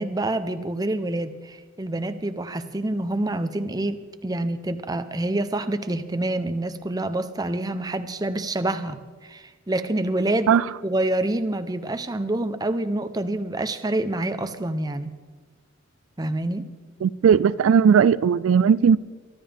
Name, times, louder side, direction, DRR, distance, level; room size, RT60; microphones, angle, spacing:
voice 1, 0.0-10.6 10.8-15.1 16.2-16.7, right 1 dB, 20° right, 0.7 m, -27 dB
voice 2, 17.0-19.0, right 7 dB, 80° right, 0.3 m, -17 dB
23.5 x 12.5 x 3.5 m
head